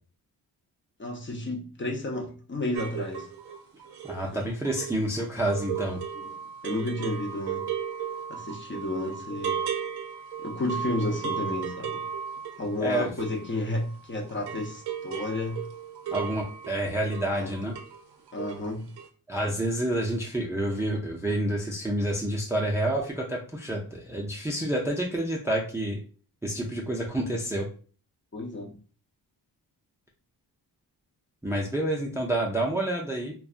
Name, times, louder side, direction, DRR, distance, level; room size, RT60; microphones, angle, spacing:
voice 1, 1.0-3.3 6.2-6.3 6.6-7.7 8.3-9.6 10.4-12.0 12.6-15.7 16.1-16.2 17.3-17.5 18.3-18.9 28.3-28.7, left 2 dB, 30° left, 0.7 m, -32 dB
sound 1, 2.7-14.0 14.3-18.0 18.3-18.7 19.0-19.1, right 8 dB, 70° right, 0.6 m, -35 dB
voice 2, 4.0-6.0 12.8-13.1 16.1-17.7 19.3-26.0 26.4-27.7 31.4-33.3, right 1 dB, 5° right, 0.4 m, -28 dB
2.6 x 2.3 x 2.4 m
cardioid pair, 75°, 41 cm